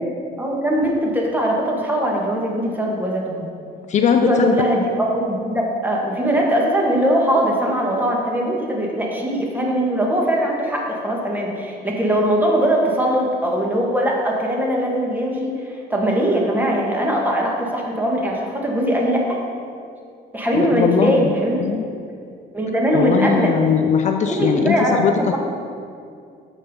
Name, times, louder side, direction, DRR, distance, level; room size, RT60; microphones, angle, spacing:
voice 1, 0.4-3.5 4.2-19.4 20.3-21.7 22.5-23.5 24.3-25.4, equal, 10° right, -1 dB, 1.5 m, -21 dB
voice 2, 3.9-4.6 20.5-21.9 22.9-25.1, left 7 dB, 45° left, 6 dB, 0.4 m, -20 dB
7.1 x 5.4 x 5.3 m, 2.3 s
cardioid pair, 110°, 17 cm